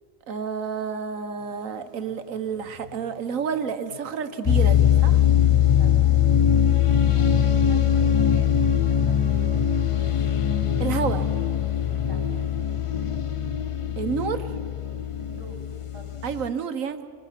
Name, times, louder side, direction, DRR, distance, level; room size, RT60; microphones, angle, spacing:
voice 1, 0.3-5.2 10.8-11.3 14.0-14.4 16.2-17.0, right 6 dB, 80° right, 9 dB, 1.5 m, -29 dB
sound 1, 1.4-13.1, left 4 dB, 90° left, 3.8 m, -51 dB
sound 2, 4.5-16.5, left 9 dB, 50° left, 0.3 m, -21 dB
voice 2, 7.1-9.6 12.0-12.4 15.2-16.3, right 2 dB, 55° right, 1 dB, 4.0 m, -46 dB
27.0 x 21.5 x 5.8 m, 2.4 s
omnidirectional pair, 1.4 m